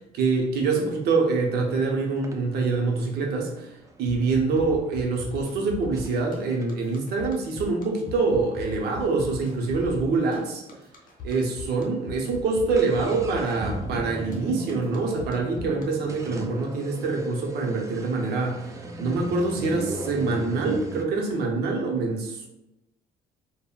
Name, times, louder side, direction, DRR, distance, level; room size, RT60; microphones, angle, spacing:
voice 1, 0.1-3.7 4.0-10.6 11.2-18.7 19.0-22.5, right 3 dB, 70° right, 0 dB, 0.7 m, -25 dB
sound 1, 1.7-1.8 2.2-4.9 5.5-5.6 5.9-6.1 6.5-10.2 10.4-10.5 10.7-10.8 11.4-11.6 11.9-21.0, right 1 dB, 20° right, 0.4 m, -38 dB
sound 2, 4.1-15.8, left 2 dB, 50° left, 0.7 m, -39 dB
3.5 x 2.1 x 2.3 m, 0.92 s
cardioid pair, 110°, 17 cm